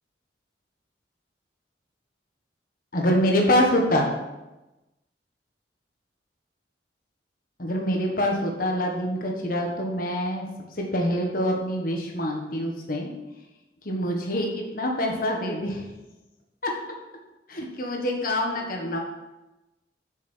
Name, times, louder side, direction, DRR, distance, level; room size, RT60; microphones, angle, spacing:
voice 1, 2.9-4.1 7.6-10.5 10.8-13.1 13.8-15.9 16.6-16.8 17.5-19.0, equal, 55° left, 1 dB, 1.6 m, -25 dB
8.0 x 6.4 x 5.6 m, 1.0 s
head